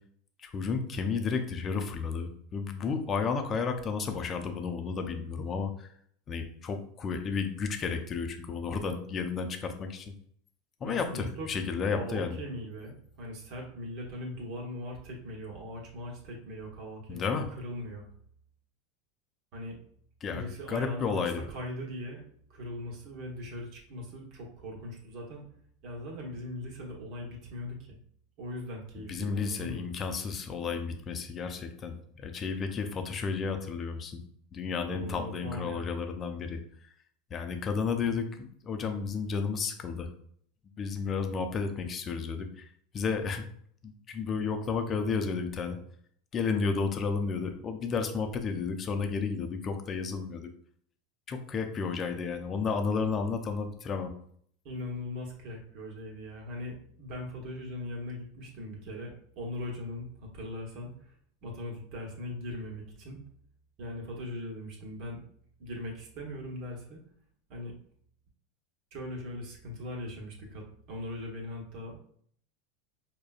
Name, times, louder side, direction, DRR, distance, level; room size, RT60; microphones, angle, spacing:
voice 1, 0.4-5.9 6.3-10.1 10.8-12.4 17.1-17.5 20.2-21.4 29.1-34.2 34.5-36.6 37.3-40.1 40.8-42.7 42.9-43.5 43.8-45.8 46.3-50.5 51.3-54.1, left 5 dB, 35° left, 6 dB, 0.5 m, -32 dB
voice 2, 10.8-11.5 11.9-18.0 19.5-19.8 20.3-22.2 22.5-25.5 25.8-28.0 28.4-29.9 34.9-35.9 54.6-61.1 61.4-63.2 63.8-65.2 65.6-67.0 67.5-67.7 68.9-72.0, left 1 dB, 55° right, -1 dB, 1.1 m, -40 dB
4.9 x 2.2 x 2.4 m, 0.63 s
hypercardioid pair, 95°, 0 cm